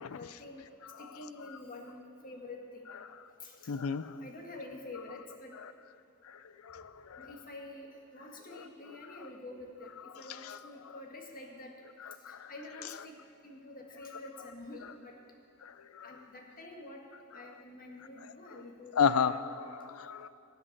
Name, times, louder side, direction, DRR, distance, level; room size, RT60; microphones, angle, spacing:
voice 1, 0.1-0.7 1.0-2.9 3.4-3.7 4.0-5.5 7.2-11.7 12.3-13.1 13.4-15.1 16.0-17.1 17.3-19.0, left 2 dB, 45° left, 1 dB, 1.6 m, -47 dB
voice 2, 3.7-4.1 6.6-7.3 10.3-10.6 12.2-12.5 15.6-16.0 19.0-20.3, left 6 dB, 85° left, 13 dB, 0.5 m, -32 dB
15.5 x 7.9 x 6.6 m, 2.5 s
head